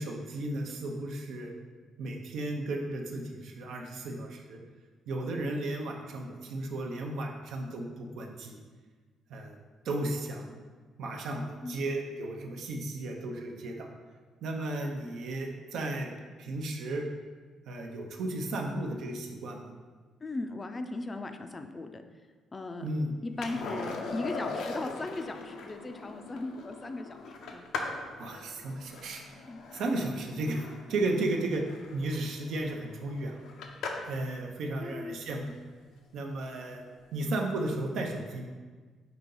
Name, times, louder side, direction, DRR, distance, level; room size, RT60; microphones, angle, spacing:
voice 1, 0.0-1.6 2.0-4.6 5.1-8.6 9.3-9.6 9.8-10.6 11.0-13.9 14.4-16.1 16.4-17.0 17.7-19.7 22.8-23.1 23.5-23.8 28.2-29.2 29.7-30.6 30.9-31.6 31.9-33.4 34.1-35.5 36.1-36.8 37.1-38.5, right 2 dB, 75° right, 2 dB, 0.6 m, -34 dB
voice 2, 20.2-22.0 22.5-22.9 23.2-27.7 29.5-29.6 34.8-35.2, left 2 dB, 25° left, 7 dB, 0.4 m, -38 dB
Skateboard, 23.4-34.3 36.8-36.9, left 3 dB, 85° left, 0.5 m, -41 dB
5.0 x 2.8 x 3.8 m, 1.4 s
cardioid pair, 90°, 0 cm